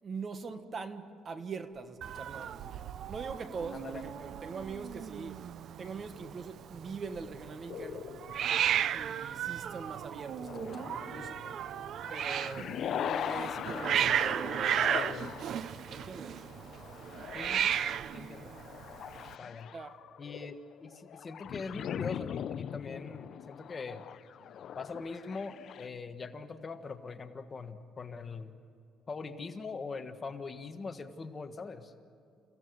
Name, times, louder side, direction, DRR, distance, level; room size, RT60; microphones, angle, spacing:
voice 1, 0.0-5.4 5.8-8.1 8.9-11.5 12.1-15.2 15.9-16.4 19.7-20.0, right 4 dB, 35° right, 1.5 m, -43 dB
Hiss, 2.0-19.3, right 9 dB, 60° right, 0.6 m, -35 dB
voice 2, 3.7-4.3 17.3-17.8 18.1-18.5 19.4-19.7 20.2-24.0 24.7-28.5 29.1-31.9, left 4 dB, 30° left, 1.4 m, -42 dB
sound 1, 7.7-9.3 10.2-25.9, left 9 dB, 55° left, 0.6 m, -41 dB
30.0 x 16.5 x 9.5 m
cardioid pair, 130°, 0 cm